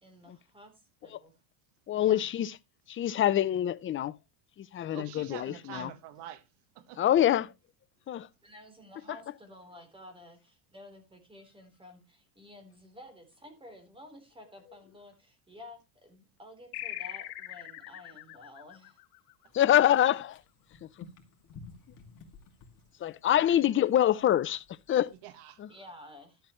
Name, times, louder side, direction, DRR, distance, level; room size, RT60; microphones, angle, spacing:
voice 1, 0.0-1.3 1.9-2.3 8.4-19.0 25.7-26.4, left 1 dB, 10° right, 3.9 m, -52 dB
voice 2, 1.9-2.5 2.9-4.1 4.7-5.9 7.0-7.5 8.1-8.3 19.5-20.2 23.0-25.1, left 11 dB, 25° left, 0.5 m, -25 dB
voice 3, 4.9-6.5 6.8-7.0 23.4-23.8 25.1-25.6, right 11 dB, 60° right, 1.7 m, -46 dB
sound 1, 16.7-19.7, left 14 dB, 80° left, 2.5 m, -42 dB
sound 2, 19.5-25.2, left 4 dB, 45° left, 2.7 m, -54 dB
12.5 x 8.0 x 3.1 m
supercardioid pair, 115°, 46 cm